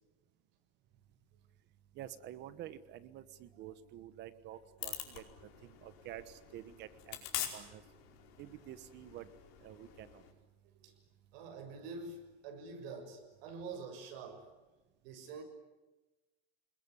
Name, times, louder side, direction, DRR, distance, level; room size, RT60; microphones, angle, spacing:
voice 1, 1.9-7.2 7.5-7.8 8.4-9.3 9.6-10.2, right 12 dB, 35° right, 13 dB, 1.2 m, -49 dB
voice 2, 4.6-5.2 10.6-10.9 11.3-14.5 15.0-15.4, right 4 dB, 70° right, 4 dB, 6.8 m, -47 dB
sound 1, 4.8-10.3, left 12 dB, 75° left, 5.1 m, -45 dB
27.0 x 21.0 x 9.9 m, 1.1 s
cardioid pair, 180°, 30 cm